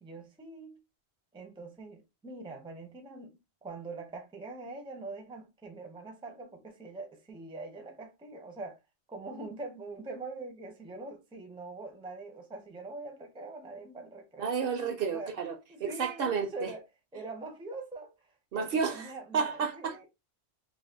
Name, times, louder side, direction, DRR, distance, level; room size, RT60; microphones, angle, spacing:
voice 1, 0.0-0.8 1.3-8.8 9.1-14.5 15.1-15.3 15.7-16.8 17.1-20.1, right 3 dB, 5° right, 0.4 m, -43 dB
voice 2, 14.4-15.5 15.8-16.7 18.5-20.1, right 6 dB, 65° right, 0.7 m, -31 dB
2.7 x 2.1 x 3.4 m
omnidirectional pair, 1.1 m